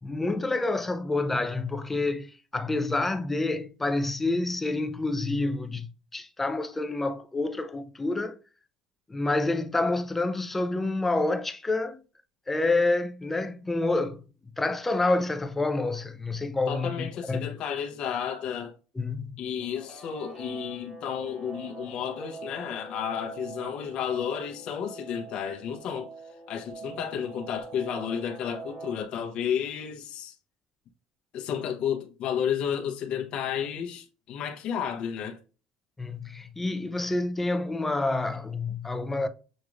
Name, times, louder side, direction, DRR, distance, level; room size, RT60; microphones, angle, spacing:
voice 1, 0.0-8.4 9.1-12.0 12.5-14.2 14.6-17.5 19.0-19.4 36.0-39.3, left 2 dB, 10° left, 0.4 m, -28 dB
voice 2, 16.7-18.7 19.4-26.1 26.5-30.3 31.3-35.4, left 8 dB, 50° left, 0.8 m, -32 dB
Guitar, 19.6-29.0, right 3 dB, 15° right, 1.6 m, -44 dB
6.3 x 2.9 x 2.5 m
cardioid pair, 150°, 2 cm